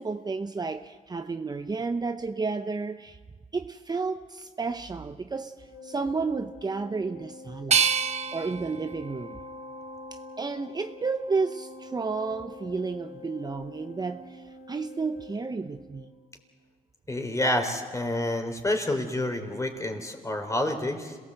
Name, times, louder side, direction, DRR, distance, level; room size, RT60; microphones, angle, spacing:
voice 1, 0.0-3.2 3.5-7.9 8.3-9.4 10.1-16.1, right 4 dB, 25° right, 8 dB, 0.8 m, -32 dB
Organ, 5.5-16.3, left 3 dB, 85° left, 6.3 m, -46 dB
sound 1, 7.7-10.6 11.2-12.0, right 6 dB, 45° right, 1.1 m, -30 dB
voice 2, 17.1-21.2, left 1 dB, 20° left, 5 dB, 3.7 m, -28 dB
27.0 x 17.5 x 7.9 m, 1.5 s
cardioid pair, 80°, 16 cm